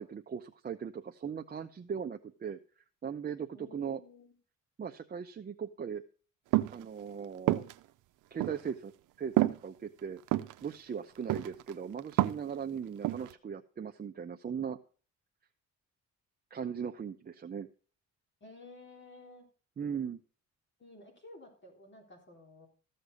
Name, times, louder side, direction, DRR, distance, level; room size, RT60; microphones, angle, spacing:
voice 1, 0.0-2.6 3.0-4.0 4.8-6.0 6.7-7.6 8.3-8.9 9.2-10.2 10.6-14.8 16.5-17.7 19.8-20.2, right 7 dB, 30° right, 5 dB, 0.7 m, -39 dB
voice 2, 3.5-4.3 18.4-19.5 20.8-22.7, left 2 dB, 40° left, 1 dB, 3.5 m, -53 dB
sound 1, 6.5-6.8 7.5-7.7 8.4-8.6 9.4-9.6 10.3-10.5 11.3-11.7 12.0-12.5 13.0-13.3, right 17 dB, 90° right, 0.6 m, -27 dB
14.0 x 6.7 x 5.3 m, 0.38 s
cardioid pair, 90°, 30 cm